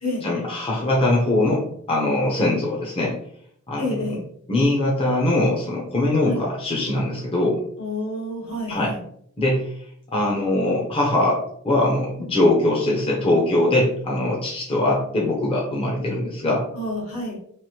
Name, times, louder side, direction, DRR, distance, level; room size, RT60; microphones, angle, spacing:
voice 1, 0.2-3.1 3.7-4.1 4.5-7.6 8.7-8.9 9.4-9.7 10.1-16.6, left 1 dB, 25° left, -3 dB, 0.6 m, -22 dB
voice 2, 3.8-4.2 6.2-6.4 7.8-9.0 16.7-17.4, left 2 dB, 70° left, -4 dB, 1.3 m, -29 dB
3.1 x 2.5 x 2.8 m, 0.64 s
head